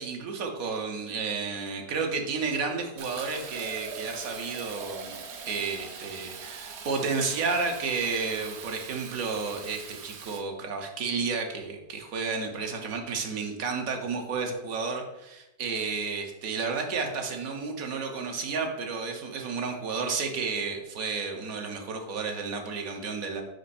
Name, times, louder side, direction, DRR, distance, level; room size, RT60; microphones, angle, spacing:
voice 1, 0.0-5.2 5.4-23.4, right 4 dB, 80° right, 3 dB, 1.3 m, -32 dB
Fill (with liquid), 3.0-10.4, right 6 dB, 60° right, 0.8 m, -42 dB
5.1 x 5.0 x 4.1 m, 0.95 s
omnidirectional pair, 1.5 m